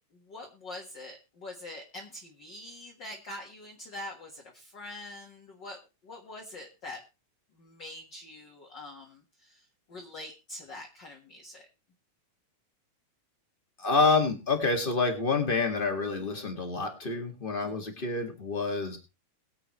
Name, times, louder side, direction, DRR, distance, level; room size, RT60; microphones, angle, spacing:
voice 1, 0.0-7.0 7.5-11.7 17.6-18.0, left 1 dB, 45° left, 0 dB, 2.0 m, -44 dB
voice 2, 13.8-19.0, left 3 dB, 20° left, 4 dB, 1.9 m, -28 dB
22.0 x 8.0 x 3.2 m, 0.28 s
omnidirectional pair, 3.3 m